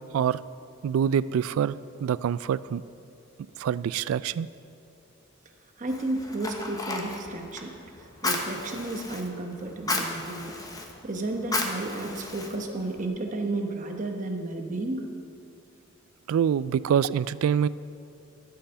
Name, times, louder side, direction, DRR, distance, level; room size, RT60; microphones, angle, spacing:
voice 1, 0.8-1.8 2.0-2.8 3.6-4.5 16.3-17.7, right 8 dB, 90° right, 17 dB, 0.3 m, -25 dB
voice 2, 5.8-7.7 8.2-10.6 11.0-15.1, right 2 dB, 40° right, 3 dB, 1.0 m, -32 dB
Fire, 5.9-13.1, left 2 dB, 20° left, 0.9 m, -34 dB
13.0 x 5.7 x 6.8 m, 2.7 s
head